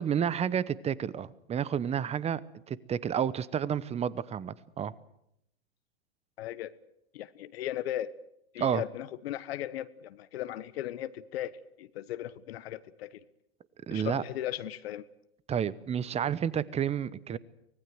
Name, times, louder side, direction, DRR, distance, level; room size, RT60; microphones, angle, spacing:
voice 1, 0.0-2.4 2.7-4.9 8.6-8.8 13.9-14.2 15.5-17.4, right 8 dB, 20° right, 20 dB, 0.9 m, -30 dB
voice 2, 6.4-6.7 7.1-8.1 8.5-13.2 13.9-15.0, left 12 dB, 65° left, 14 dB, 1.2 m, -37 dB
24.5 x 19.0 x 7.8 m, 0.77 s
hypercardioid pair, 110°, 33 cm